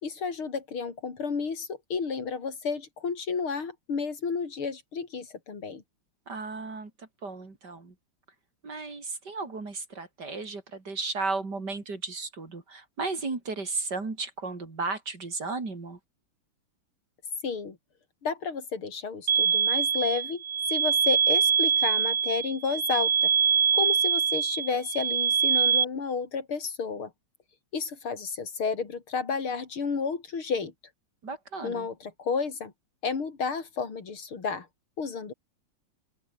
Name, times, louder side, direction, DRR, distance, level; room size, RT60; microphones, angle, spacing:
voice 1, 0.0-5.8 17.4-17.8 18.2-20.4 20.7-23.3 23.7-27.1 27.7-30.7 31.6-32.7 33.0-34.7 35.0-35.3, left 5 dB, 85° left, 4.1 m, -31 dB
voice 2, 6.3-6.9 7.2-7.9 8.6-16.0 31.2-31.9, right 3 dB, 50° right, 4.3 m, -34 dB
sound 1, 19.3-25.8, right 7 dB, 75° right, 2.9 m, -24 dB
open air
omnidirectional pair, 2.3 m